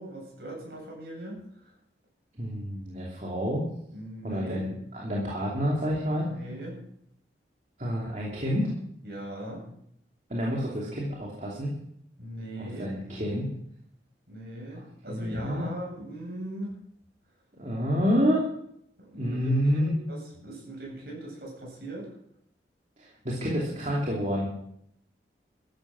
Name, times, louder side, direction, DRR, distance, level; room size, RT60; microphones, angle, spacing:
voice 1, 0.0-1.4 3.9-4.7 6.2-6.8 9.0-9.7 12.2-13.0 14.3-16.8 19.0-22.2, right 1 dB, 55° right, -2 dB, 7.8 m, -39 dB
voice 2, 2.4-3.6 4.2-6.3 7.8-8.7 10.3-11.7 12.6-13.5 15.1-15.7 17.6-18.5 19.2-19.9 23.0-24.5, equal, 40° right, -4 dB, 2.8 m, -28 dB
14.0 x 12.0 x 6.1 m, 0.72 s
head